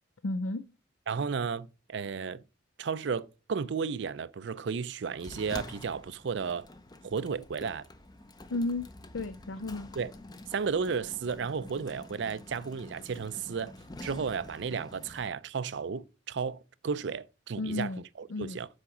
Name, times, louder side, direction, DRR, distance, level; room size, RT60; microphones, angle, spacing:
voice 1, 0.2-0.6 8.5-8.9 9.1-9.9 17.6-18.0 18.3-18.6, left 2 dB, 75° left, 0.5 m, -33 dB
voice 2, 1.1-2.4 2.8-6.7 7.0-7.8 10.0-10.1 10.5-13.7 14.0-17.9 18.2-18.7, right 5 dB, 55° right, 0.4 m, -33 dB
Sliding door, 5.2-15.3, left 2 dB, 20° left, 0.6 m, -47 dB
8.4 x 5.0 x 4.9 m
head